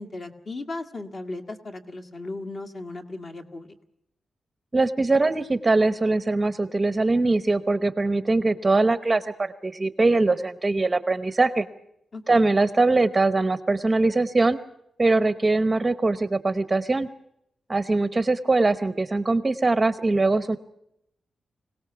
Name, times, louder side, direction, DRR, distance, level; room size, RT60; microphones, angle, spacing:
voice 1, 0.0-3.7 12.1-12.5, left 2 dB, 40° left, 5 dB, 2.0 m, -36 dB
voice 2, 4.7-11.7 12.3-14.6 15.0-17.1 17.7-20.6, right 3 dB, 20° right, 12 dB, 0.8 m, -22 dB
25.5 x 18.0 x 6.9 m, 0.78 s
wide cardioid pair, 155°, 0 cm